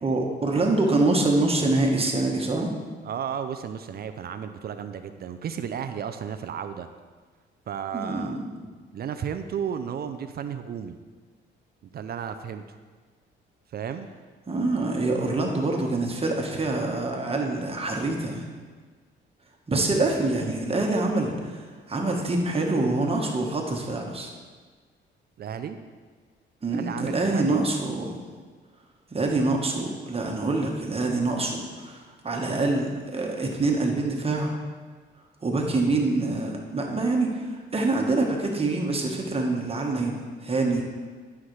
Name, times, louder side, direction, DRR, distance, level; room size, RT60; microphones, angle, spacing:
voice 1, 0.0-2.7 7.9-8.3 14.5-18.5 19.7-24.3 26.6-28.2 29.1-34.5 35.4-40.8, right 2 dB, 30° right, 1 dB, 1.4 m, -25 dB
voice 2, 3.0-6.9 7.7-8.4 8.9-11.0 11.9-12.6 13.7-14.1 25.4-25.8 26.7-27.6 35.8-36.1, right 8 dB, 50° right, 9 dB, 0.5 m, -33 dB
11.5 x 5.8 x 3.3 m, 1.5 s
cardioid pair, 90°, 20 cm